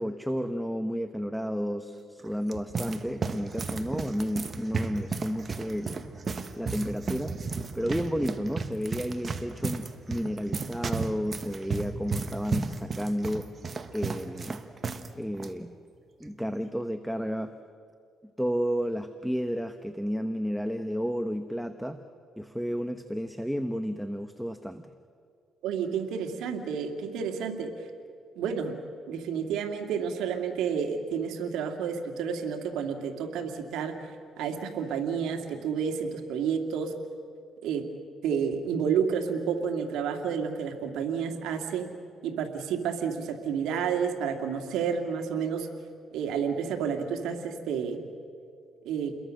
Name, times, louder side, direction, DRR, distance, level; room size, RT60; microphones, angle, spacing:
voice 1, 0.0-6.0 6.6-7.4 7.7-13.5 13.9-14.6 15.1-15.7 16.2-17.5 18.4-22.0 22.4-24.8, equal, ahead, 8 dB, 1.0 m, -32 dB
sound 1, 2.2-15.1 15.3-15.5 16.2-16.5, right 4 dB, 40° right, 1.5 m, -34 dB
voice 2, 25.6-27.7 28.4-28.8 29.1-34.0 34.4-36.9 37.6-37.9 38.2-41.9 42.2-45.7 46.1-48.1 48.8-49.2, right 7 dB, 90° right, 4 dB, 2.3 m, -30 dB
29.5 x 22.0 x 6.5 m, 2.3 s
cardioid pair, 90°, 0 cm